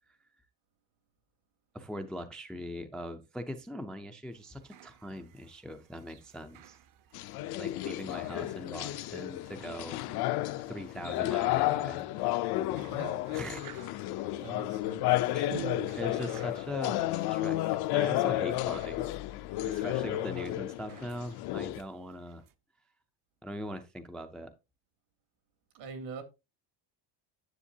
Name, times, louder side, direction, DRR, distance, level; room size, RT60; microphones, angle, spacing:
voice 1, 1.7-6.8 7.6-10.2 10.7-12.0 13.3-13.6 15.3-15.5 15.9-17.6 17.9-19.1 19.6-22.4 23.4-24.5, equal, ahead, 0.3 m, -41 dB
sound 1, 4.3-22.5, right 10 dB, 45° right, 0.7 m, -52 dB
sound 2, 7.1-21.8, left 15 dB, 60° left, 0.5 m, -32 dB
voice 2, 12.7-13.2 14.4-15.2 25.7-26.2, right 5 dB, 80° right, 2.6 m, -43 dB
10.0 x 7.1 x 2.7 m
cardioid pair, 165°, 45 cm